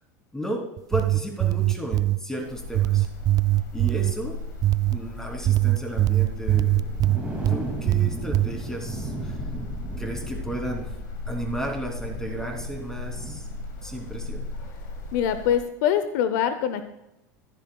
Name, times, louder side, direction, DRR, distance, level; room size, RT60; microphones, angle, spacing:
sound 1, 0.8-2.2 2.7-4.1 4.6-5.0 5.5-7.6 7.9-8.5, right 16 dB, 40° right, 0.3 m, -21 dB
voice 1, 0.9-3.1 3.7-4.3 4.9-7.0 7.5-9.4 10.0-10.9 11.3-13.5 13.8-14.5, right 1 dB, 5° left, 0 dB, 3.3 m, -33 dB
sound 2, 2.4-15.6, left 2 dB, 90° left, 1.8 m, -37 dB
sound 3, 6.5-14.2 14.5-14.7 15.1-15.2, right 2 dB, 10° right, 2.6 m, -37 dB
voice 2, 15.1-16.8, left 9 dB, 70° left, 10 dB, 0.8 m, -24 dB
14.0 x 11.5 x 2.4 m, 0.90 s
hypercardioid pair, 100°, 10 cm